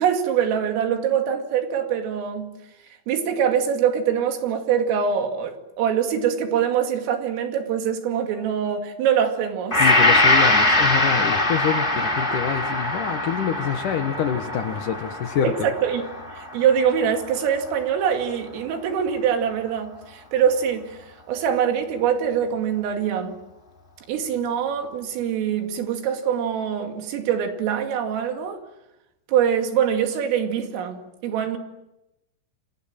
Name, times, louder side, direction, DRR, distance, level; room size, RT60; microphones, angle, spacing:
voice 1, 0.0-2.5 3.1-9.9 12.3-12.4 15.4-15.5 15.8-16.0 16.3-23.4 24.1-28.6 29.3-31.6, right 8 dB, 80° right, 4.9 m, -24 dB
Gong, 9.7-18.0 18.5-18.6, left 2 dB, 15° left, 2.0 m, -22 dB
voice 2, 9.8-15.7, left 8 dB, 75° left, 1.9 m, -26 dB
29.5 x 26.0 x 7.5 m
omnidirectional pair, 5.8 m